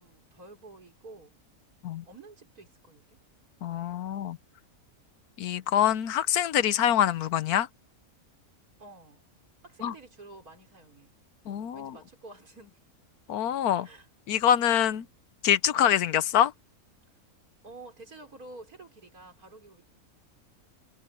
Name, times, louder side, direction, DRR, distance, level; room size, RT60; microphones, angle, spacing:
voice 1, 0.0-1.3 2.1-3.2 8.8-9.3 9.6-11.1 11.7-12.8 13.8-14.1 15.7-16.1 17.6-19.9, right 2 dB, 80° right, 5.3 m, -49 dB
voice 2, 3.6-4.4 5.4-7.7 9.8-9.9 11.5-11.9 13.3-13.9 14.3-15.0 15.4-16.5, left 10 dB, 85° left, 1.3 m, -25 dB
omnidirectional pair, 1.5 m